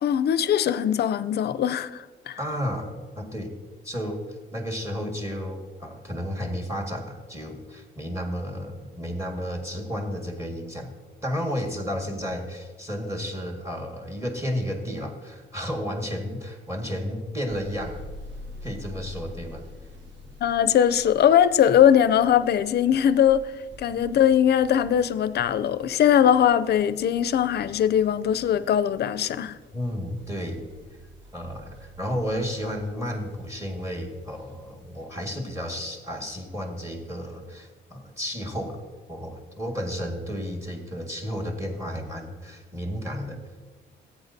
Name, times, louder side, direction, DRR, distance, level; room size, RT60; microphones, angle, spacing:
voice 1, 0.0-2.4 20.4-23.5 23.8-29.6, left 9 dB, 55° left, 0.5 m, -21 dB
voice 2, 2.4-3.5 3.8-10.9 11.2-18.1 18.6-19.6 29.7-30.7 31.3-38.8 39.1-43.4, equal, 15° right, 1.8 m, -32 dB
sound 1, 17.5-35.1, left 1 dB, 70° right, 1.8 m, -47 dB
14.0 x 8.4 x 2.7 m
cardioid pair, 90°, 20 cm